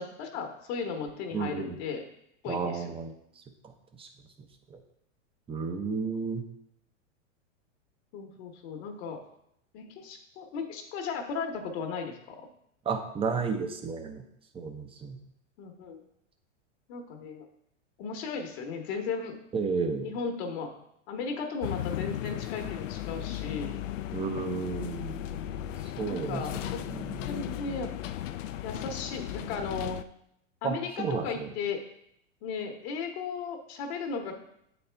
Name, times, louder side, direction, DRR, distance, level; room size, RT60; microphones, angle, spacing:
voice 1, 0.0-2.0 2.4-2.9 8.1-9.2 9.7-12.4 15.6-16.0 16.9-17.5 18.0-19.4 20.0-20.8 21.1-23.8 26.1-26.8 27.2-27.9 28.6-30.0 30.6-31.8 32.4-34.3, left 5 dB, 55° left, 4 dB, 1.2 m, -36 dB
voice 2, 1.3-1.8 2.5-3.1 4.0-4.1 4.7-4.8 5.5-6.4 12.9-14.2 14.5-15.2 19.5-20.1 24.1-25.2 25.8-26.4 26.9-27.2 30.6-31.5, right 5 dB, 15° right, 6 dB, 0.7 m, -32 dB
sound 1, 21.6-30.0, left 12 dB, 80° left, 0.5 m, -36 dB
8.5 x 4.3 x 3.4 m, 0.75 s
hypercardioid pair, 115°, 38 cm